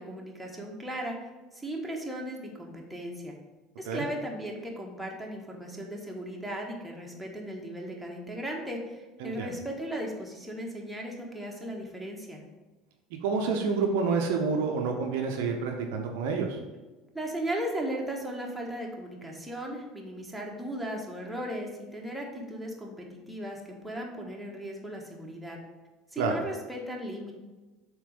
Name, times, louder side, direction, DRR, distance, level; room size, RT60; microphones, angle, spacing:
voice 1, 0.0-3.3 3.8-12.4 17.1-25.6 26.1-27.3, right 1 dB, 5° right, -1 dB, 1.4 m, -37 dB
voice 2, 9.2-9.5 13.2-16.6 26.2-26.4, right 5 dB, 60° right, 2 dB, 0.7 m, -28 dB
7.4 x 3.1 x 5.2 m, 1.2 s
figure-of-eight pair, 70°, 0 cm